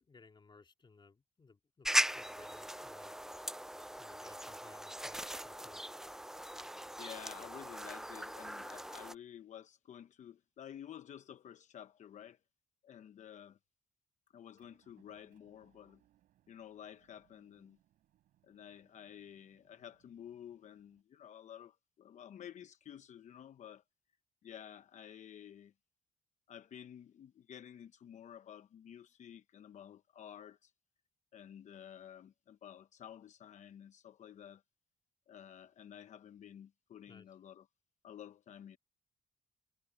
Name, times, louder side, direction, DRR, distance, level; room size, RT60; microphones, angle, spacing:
voice 1, 0.0-3.1 4.0-5.8 37.1-37.3, left 4 dB, 35° left, 2.5 m, -61 dB
sound 1, 1.8-9.1, right 1 dB, 5° right, 0.6 m, -39 dB
voice 2, 7.0-12.4 12.8-13.6 14.3-16.0 16.5-17.8 18.4-23.8 24.4-25.7 26.5-30.7 31.3-34.6 35.3-37.7 38.0-38.8, left 9 dB, 65° left, 0.9 m, -52 dB
Motor vehicle (road) / Engine, 14.5-21.0, right 13 dB, 80° right, 7.7 m, -74 dB
supercardioid pair, 60°, 13 cm